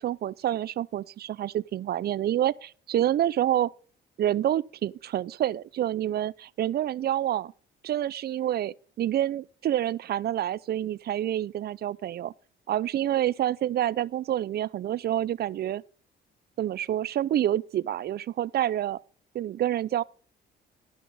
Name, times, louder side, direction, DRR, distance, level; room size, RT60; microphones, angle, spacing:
voice 1, 0.0-3.7 4.2-7.5 7.8-12.3 12.7-15.8 16.6-19.0 19.3-20.0, right 12 dB, 55° right, 0.4 m, -28 dB
12.0 x 5.9 x 5.4 m
cardioid pair, 90°, 20 cm